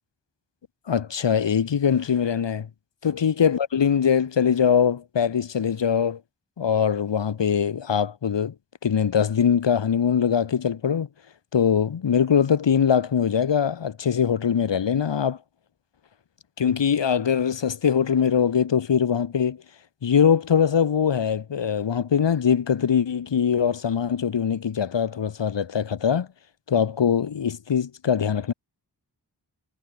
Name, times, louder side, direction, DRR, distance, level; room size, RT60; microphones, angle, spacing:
voice 1, 0.9-2.7 3.0-6.2 6.6-8.5 8.8-11.1 11.5-15.4 16.6-19.6 20.0-26.3 26.7-28.5, left 7 dB, 80° left, 1.5 m, -22 dB
wide cardioid pair, 95°, 43 cm